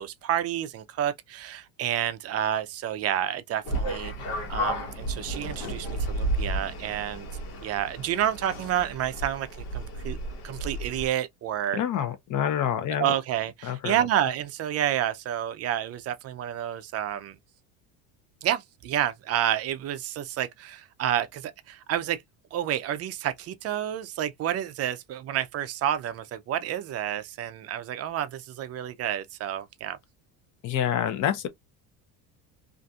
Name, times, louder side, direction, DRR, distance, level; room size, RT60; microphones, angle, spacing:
voice 1, 0.0-4.1 4.5-7.3 7.6-10.2 10.4-11.8 13.0-17.4 18.4-22.2 22.5-30.0, right 11 dB, 40° right, 0.4 m, -29 dB
sound 1, 3.6-11.1, right 1 dB, 80° left, 1.2 m, -32 dB
voice 2, 11.7-13.1 13.6-14.1 30.6-31.5, left 10 dB, 45° left, 0.7 m, -27 dB
2.6 x 2.5 x 2.3 m
cardioid pair, 120°, 41 cm